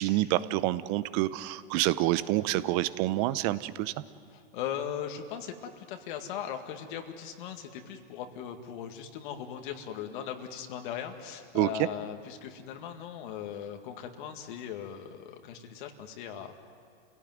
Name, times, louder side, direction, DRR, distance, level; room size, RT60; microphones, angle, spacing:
voice 1, 0.0-3.9 11.5-11.9, right 16 dB, 40° right, 16 dB, 0.8 m, -27 dB
voice 2, 4.3-16.6, left 9 dB, 55° left, 5 dB, 2.0 m, -39 dB
29.0 x 17.0 x 9.3 m, 2.4 s
hypercardioid pair, 140°, 30 cm